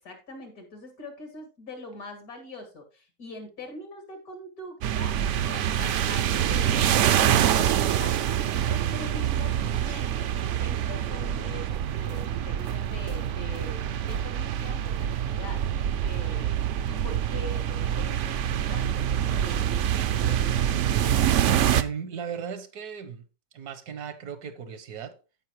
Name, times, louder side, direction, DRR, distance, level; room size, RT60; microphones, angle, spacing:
voice 1, 0.0-5.2 5.5-15.6 16.0-16.5 16.9-18.4 18.7-20.8, left 2 dB, 70° left, 3.0 m, -43 dB
sound 1, 4.8-21.8, right 10 dB, 65° right, 0.8 m, -25 dB
voice 2, 21.7-23.2 23.5-25.2, right 7 dB, 85° right, 1.6 m, -36 dB
15.0 x 5.4 x 3.1 m
omnidirectional pair, 1.6 m